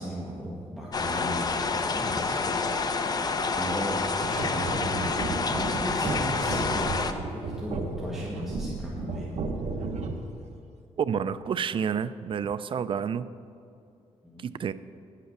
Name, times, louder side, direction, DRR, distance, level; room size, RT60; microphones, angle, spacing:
voice 1, 0.0-1.5 1.8-2.4 3.3-5.1 5.5-9.3 14.2-14.5, equal, 5° right, -6 dB, 1.6 m, -36 dB
sound 1, 0.9-7.1, left 4 dB, 35° left, 0.7 m, -28 dB
sound 2, 4.2-10.4, right 3 dB, 65° right, 1.1 m, -33 dB
voice 2, 11.0-13.3 14.4-14.7, right 7 dB, 45° right, 14 dB, 0.4 m, -29 dB
10.5 x 8.3 x 6.6 m, 2.6 s
cardioid pair, 120°, 12 cm